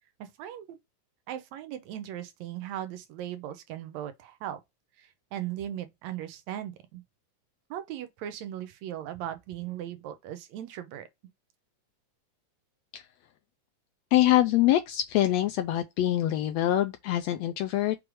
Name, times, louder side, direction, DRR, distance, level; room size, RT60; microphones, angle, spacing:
voice 1, 0.2-0.8 1.3-4.6 5.0-7.0 7.7-11.1, right 11 dB, 75° right, 1.9 m, -38 dB
voice 2, 14.1-18.0, left 14 dB, 80° left, 1.6 m, -24 dB
6.1 x 3.2 x 4.8 m
omnidirectional pair, 3.5 m